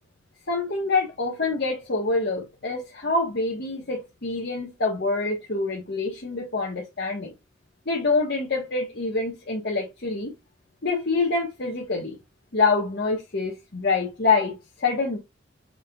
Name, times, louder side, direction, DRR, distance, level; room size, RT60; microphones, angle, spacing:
voice 1, 0.5-7.3 7.9-10.3 10.8-12.2 12.5-15.2, left 3 dB, 55° left, 1.1 m, -26 dB
5.5 x 4.1 x 2.3 m
head